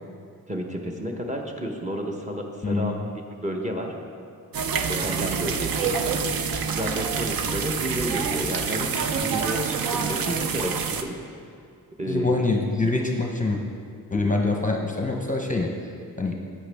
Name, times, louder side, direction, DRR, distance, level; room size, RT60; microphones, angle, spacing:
voice 1, 0.5-3.0 3.4-3.9 4.9-5.9 6.7-11.2 12.0-12.4, equal, 20° right, 1 dB, 0.9 m, -31 dB
voice 2, 2.6-3.1 12.1-13.6 14.1-15.9 16.2-16.4, left 3 dB, 20° left, 1 dB, 0.7 m, -25 dB
Kingdoms of the Night (Bubbles at the Swamp), 4.5-11.0, right 6 dB, 80° right, 0.6 m, -27 dB
11.0 x 8.4 x 3.4 m, 2.3 s
wide cardioid pair, 120°, 35 cm